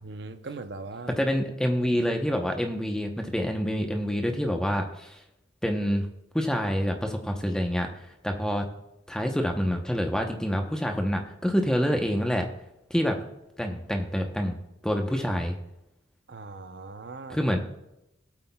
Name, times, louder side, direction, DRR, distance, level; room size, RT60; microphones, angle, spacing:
voice 1, 0.0-1.2 16.3-17.4, right 3 dB, 60° right, 9 dB, 0.7 m, -40 dB
voice 2, 1.1-5.2 5.6-6.1 6.3-7.9 8.2-8.7 9.1-12.5 12.9-13.2 13.6-14.6 14.8-15.6 17.3-17.6, equal, 5° left, 3 dB, 0.8 m, -27 dB
18.0 x 8.3 x 2.3 m, 0.89 s
head